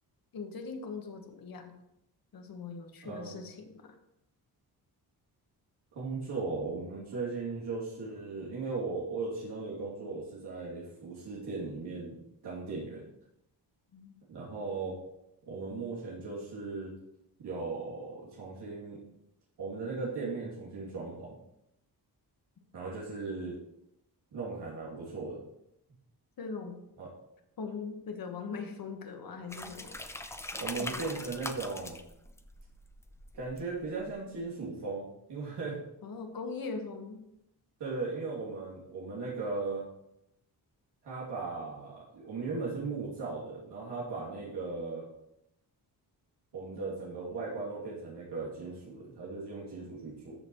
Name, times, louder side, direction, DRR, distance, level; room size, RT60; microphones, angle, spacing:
voice 1, 0.3-1.8 2.3-3.9 13.9-14.2 26.4-26.8 27.6-30.0 30.8-31.3 36.0-37.2, left 4 dB, 60° left, 5 dB, 1.5 m, -41 dB
voice 2, 3.0-3.4 5.9-12.2 12.4-13.0 14.3-15.0 15.4-16.9 17.4-19.0 19.6-21.3 22.7-23.6 24.3-25.4 27.0-27.1 30.5-32.0 33.3-35.0 35.3-35.8 37.8-39.8 41.0-45.0 46.5-50.4, right 3 dB, 90° right, -6 dB, 2.9 m, -37 dB
sound 1, 29.5-34.1, left 1 dB, 5° left, 0.6 m, -42 dB
13.5 x 6.9 x 3.1 m, 0.83 s
wide cardioid pair, 135°, 39 cm